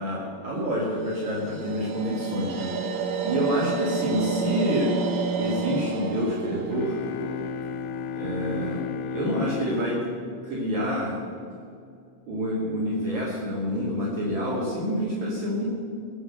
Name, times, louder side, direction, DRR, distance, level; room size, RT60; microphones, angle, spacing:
voice 1, 0.0-4.9 5.4-7.0 8.2-8.8 9.1-10.0 10.4-11.2 12.3-15.6, equal, 45° right, -6 dB, 3.6 m, -27 dB
sound 1, 1.0-8.1, right 5 dB, 65° right, 2.2 m, -31 dB
sound 2, 6.7-11.4, left 7 dB, 80° left, 2.6 m, -34 dB
22.0 x 8.1 x 6.7 m, 2.3 s
omnidirectional pair, 4.8 m